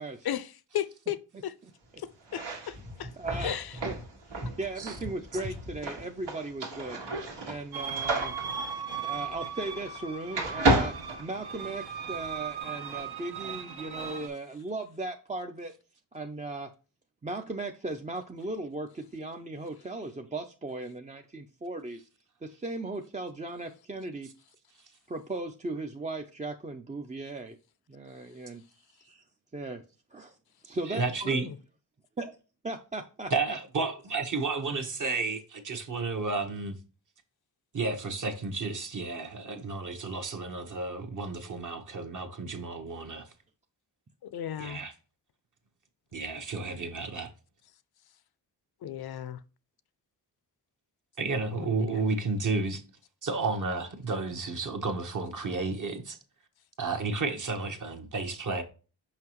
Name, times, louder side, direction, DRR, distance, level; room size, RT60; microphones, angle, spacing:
voice 1, 0.2-1.5 2.0-3.1 3.4-3.8 4.5-4.6 31.2-31.6 44.2-44.8 48.8-49.4 51.5-51.7, left 10 dB, 65° left, 0.5 m, -36 dB
sound 1, 2.2-10.0 10.3-12.0, right 2 dB, 90° right, 2.0 m, -32 dB
voice 2, 3.2-3.6 3.8-3.9 4.6-7.0 7.5-8.3 9.0-15.7 16.1-16.7 17.2-22.0 22.4-24.3 25.1-27.6 27.9-29.2 29.5-29.8 30.1-30.4 30.6-31.0 32.2-32.3 32.6-33.6, right 2 dB, 20° right, 0.4 m, -37 dB
sound 2, 7.7-14.3, right 6 dB, 70° right, 1.1 m, -37 dB
voice 3, 30.9-31.5 33.3-36.8 37.7-43.3 44.6-44.9 46.1-47.3 51.2-52.8 53.2-56.2 56.8-58.6, right 3 dB, 45° right, 1.1 m, -32 dB
5.7 x 5.5 x 3.0 m
wide cardioid pair, 120°, 41 cm